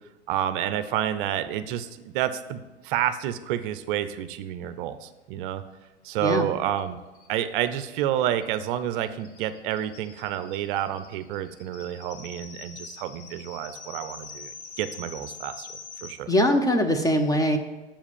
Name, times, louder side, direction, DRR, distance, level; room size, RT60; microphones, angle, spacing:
voice 1, 0.3-5.6 6.0-7.0 7.3-14.5 14.8-15.7 16.0-16.3, right 11 dB, 50° right, 12 dB, 0.6 m, -29 dB
sound 1, 6.4-6.5 6.8-6.9 7.1-16.1, left 5 dB, 75° left, 1.3 m, -45 dB
voice 2, 16.3-17.6, equal, 10° left, 6 dB, 0.7 m, -22 dB
7.2 x 4.8 x 7.1 m, 1.1 s
hypercardioid pair, 105°, 34 cm